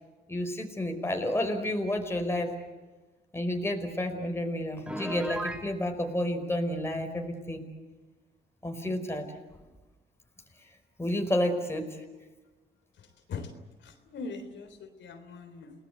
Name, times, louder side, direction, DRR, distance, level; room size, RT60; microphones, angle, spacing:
voice 1, 0.3-2.5 3.3-7.6 8.6-9.3 11.0-11.9, left 1 dB, 10° left, 4 dB, 5.0 m, -30 dB
Piano, 4.9-5.7, right 1 dB, 5° right, 2.6 m, -34 dB
voice 2, 13.8-15.7, left 4 dB, 70° left, 5 dB, 3.7 m, -41 dB
29.5 x 19.0 x 8.0 m, 1.2 s
cardioid pair, 90°, 20 cm